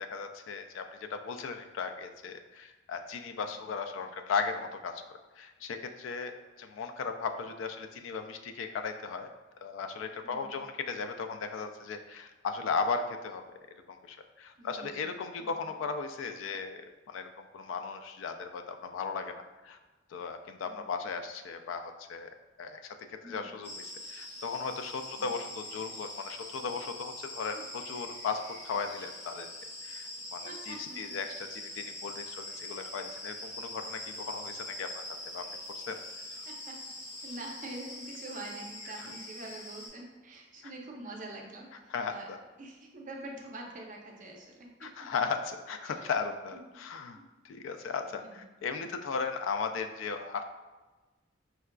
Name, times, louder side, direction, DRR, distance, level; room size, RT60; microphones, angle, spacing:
voice 1, 0.0-5.0 5.4-6.3 6.6-9.3 9.6-13.5 13.9-16.8 17.1-19.8 20.1-22.3 22.6-23.0 23.2-29.5 29.8-35.0 35.3-35.4 35.7-36.0 36.3-36.4 39.0-39.1 40.6-40.7 41.9-42.4 44.8-47.2 47.4-50.4, left 5 dB, 85° left, 8 dB, 0.3 m, -36 dB
voice 2, 10.2-10.6 14.6-15.1 15.4-15.6 20.6-20.8 23.2-23.5 25.1-25.3 27.5-27.6 30.2-31.2 36.5-36.8 37.2-42.3 42.6-45.1 45.8-46.1 47.1-47.2 47.7-47.9 48.2-48.5, right 2 dB, 45° right, 0 dB, 0.5 m, -45 dB
sound 1, 23.6-39.9, left 1 dB, 65° left, 1.5 m, -43 dB
4.5 x 2.3 x 2.2 m, 1.2 s
head